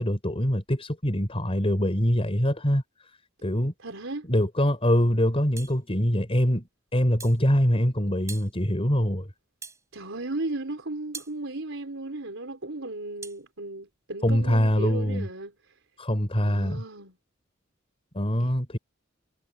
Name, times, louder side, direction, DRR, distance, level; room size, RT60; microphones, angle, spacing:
voice 1, 0.0-2.8 3.4-3.7 4.3-6.7 6.9-9.3 14.2-15.3 16.0-16.8 18.1-18.8, equal, 30° left, 5.2 m, -24 dB
voice 2, 3.8-4.3 9.9-15.5 16.4-17.2 18.4-18.6, right 2 dB, 70° right, 4.4 m, -35 dB
sound 1, 5.6-5.8 7.2-7.4 8.3-8.5 9.6-9.8 11.1-11.4 13.2-13.4, right 4 dB, 15° right, 5.1 m, -41 dB
head